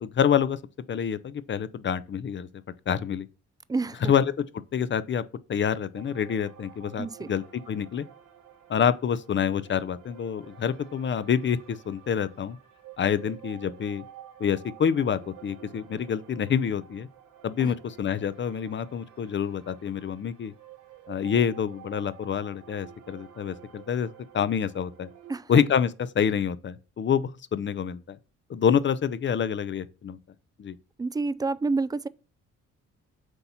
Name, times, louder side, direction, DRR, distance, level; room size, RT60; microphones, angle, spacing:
voice 1, 0.0-0.6 0.9-2.5 2.9-3.3 4.0-4.4 4.7-5.2 5.5-8.0 8.7-12.6 13.0-14.0 14.4-17.1 17.4-20.5 21.1-25.1 25.5-28.2 28.5-30.2 30.6-30.8, left 8 dB, 40° left, 0.6 m, -27 dB
voice 2, 3.7-4.1 7.0-7.3 17.6-17.7 25.3-25.4 31.0-32.1, right 3 dB, 15° right, 0.3 m, -28 dB
sound 1, 5.9-25.4, right 11 dB, 85° right, 1.4 m, -51 dB
7.9 x 2.9 x 5.6 m
cardioid pair, 90°, 30 cm